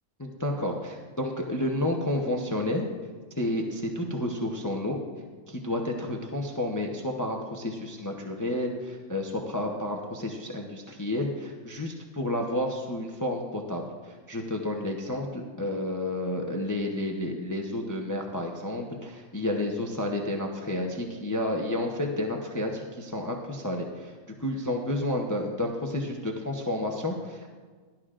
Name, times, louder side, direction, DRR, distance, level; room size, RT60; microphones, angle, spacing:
voice 1, 0.2-2.9 3.4-5.0 5.5-24.1 24.4-27.5, left 1 dB, 15° left, 1 dB, 0.7 m, -31 dB
16.0 x 12.0 x 2.5 m, 1.5 s
omnidirectional pair, 1.5 m